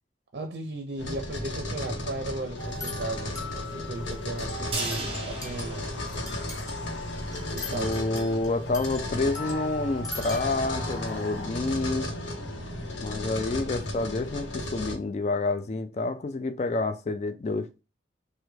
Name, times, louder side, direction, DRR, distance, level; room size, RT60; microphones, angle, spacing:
voice 1, 0.3-5.9 7.5-8.0, right 2 dB, 65° right, 0.5 m, -36 dB
sound 1, 1.0-14.9, left 1 dB, 80° left, 0.8 m, -34 dB
sound 2, 2.6-11.5, left 2 dB, 20° left, 0.9 m, -41 dB
sound 3, 4.7-6.9 7.2-7.3 7.6-7.7, right 3 dB, 30° right, 0.8 m, -36 dB
voice 2, 7.7-12.1 13.0-17.7, left 3 dB, 35° left, 0.3 m, -28 dB
3.4 x 2.1 x 3.1 m
head